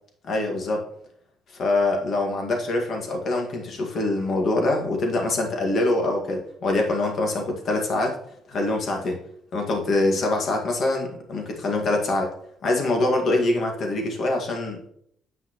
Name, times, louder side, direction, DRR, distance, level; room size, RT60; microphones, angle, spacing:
voice 1, 0.2-0.8 1.6-8.2 8.5-9.2 9.5-12.3 12.6-14.8, left 2 dB, 55° left, 2 dB, 1.9 m, -24 dB
7.9 x 5.8 x 3.0 m, 0.67 s
cardioid pair, 85°, 0 cm